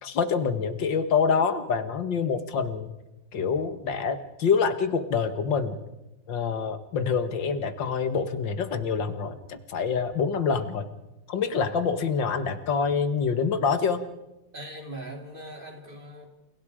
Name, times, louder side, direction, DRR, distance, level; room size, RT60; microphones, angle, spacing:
voice 1, 0.0-2.9 3.3-5.8 6.3-10.9 11.3-14.0, left 6 dB, 85° left, 10 dB, 2.3 m, -26 dB
voice 2, 14.5-16.3, right 1 dB, 30° right, 3 dB, 3.5 m, -40 dB
29.5 x 29.0 x 5.0 m, 0.98 s
omnidirectional pair, 1.9 m